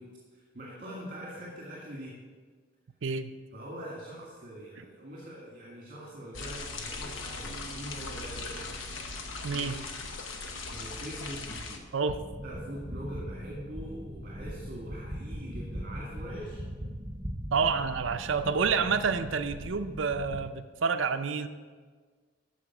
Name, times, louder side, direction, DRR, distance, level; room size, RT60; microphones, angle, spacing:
voice 1, 0.0-2.2 3.5-8.7 9.5-10.1 10.7-12.0 12.4-16.7, equal, 45° right, -4 dB, 2.0 m, -43 dB
voice 2, 3.0-3.3 9.4-9.9 11.9-12.2 17.5-21.5, right 5 dB, 75° right, 9 dB, 0.5 m, -29 dB
sound 1, 6.3-11.8, left 3 dB, 90° left, 1.1 m, -39 dB
Bass guitar, 7.4-10.4, right 4 dB, 5° left, 1.7 m, -53 dB
sound 2, 12.1-20.4, equal, 25° right, 1.1 m, -40 dB
13.0 x 5.0 x 6.0 m, 1.5 s
head